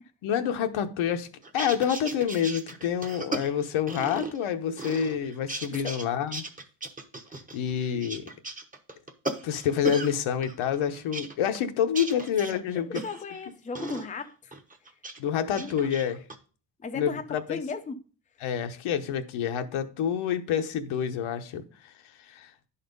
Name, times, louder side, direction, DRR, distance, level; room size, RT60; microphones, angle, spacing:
voice 1, 0.2-1.3 1.5-6.4 7.5-8.3 9.4-13.0 15.2-16.2 16.9-17.6 18.4-21.6 22.3-22.5, left 8 dB, 80° left, 1.1 m, -28 dB
sound 1, 1.4-4.5 4.8-6.1 6.3-10.1 10.4-13.4 13.7-14.1 14.5-15.2 15.5-16.3, right 3 dB, 15° right, 1.0 m, -37 dB
voice 2, 12.7-14.5 15.6-15.7 16.8-18.0, left 4 dB, 15° left, 0.6 m, -36 dB
10.5 x 4.3 x 5.3 m
cardioid pair, 130°, 48 cm